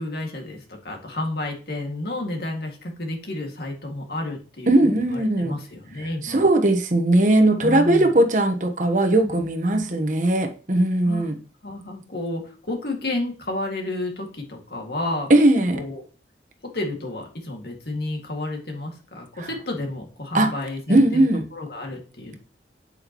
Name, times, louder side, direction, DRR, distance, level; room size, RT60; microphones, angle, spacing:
voice 1, 0.0-6.5 7.6-8.1 9.1-9.8 11.1-11.3 11.6-15.3 15.7-16.0 16.6-22.4, left 2 dB, 60° left, 2 dB, 2.2 m, -31 dB
voice 2, 4.7-5.6 6.2-11.4 15.3-15.8 19.4-19.5 20.3-20.5 20.9-21.4, right 1 dB, 45° right, 6 dB, 1.1 m, -19 dB
8.8 x 8.2 x 3.0 m, 0.37 s
head